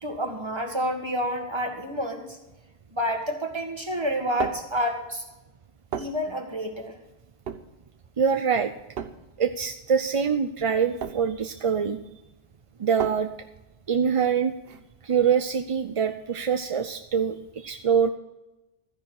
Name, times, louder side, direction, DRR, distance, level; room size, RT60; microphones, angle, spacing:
voice 1, 0.0-2.4 2.9-5.2 6.0-7.0, equal, 25° right, 3 dB, 1.9 m, -29 dB
sound 1, 4.0-15.5, right 7 dB, 70° right, 1.0 m, -39 dB
voice 2, 8.2-8.7 9.4-12.0 12.8-13.3 13.9-14.5 15.0-18.1, right 7 dB, 40° right, 8 dB, 0.5 m, -24 dB
13.5 x 10.0 x 4.8 m, 1.0 s
omnidirectional pair, 1.1 m